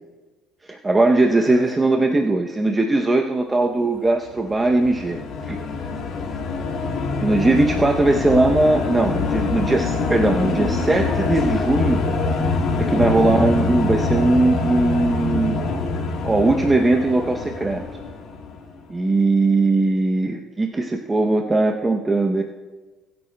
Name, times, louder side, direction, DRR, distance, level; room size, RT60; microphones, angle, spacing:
voice 1, 0.6-5.2 5.5-5.6 7.2-12.0 12.8-15.6 16.2-17.8 18.9-22.4, right 2 dB, 15° right, 2 dB, 0.6 m, -19 dB
sound 1, 4.3-18.8, left 3 dB, 50° left, 1.8 m, -25 dB
voice 2, 6.6-7.8 13.1-13.6, right 2 dB, 50° right, 1 dB, 3.4 m, -32 dB
22.5 x 8.5 x 2.2 m, 1.3 s
cardioid pair, 120°, 0 cm